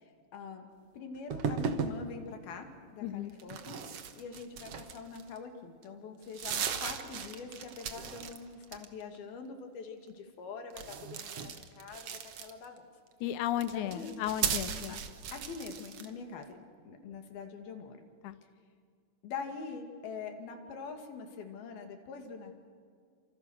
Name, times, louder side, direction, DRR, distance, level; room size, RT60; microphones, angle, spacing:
voice 1, 0.3-0.7 0.9-3.8 4.2-12.9 13.7-14.2 14.9-15.0 15.3-16.6 16.9-18.0 19.2-22.6, left 5 dB, 85° left, 5 dB, 4.1 m, -44 dB
sound 1, 1.3-2.0 3.4-5.4 5.8-5.9 6.2-8.4 8.6-9.2 10.7-12.8 13.5-16.1, right 7 dB, 55° right, 1.8 m, -37 dB
voice 2, 3.0-3.3 13.2-15.0 18.2-18.4, left 11 dB, 70° left, 13 dB, 2.1 m, -34 dB
29.5 x 27.0 x 6.4 m, 2.1 s
omnidirectional pair, 4.2 m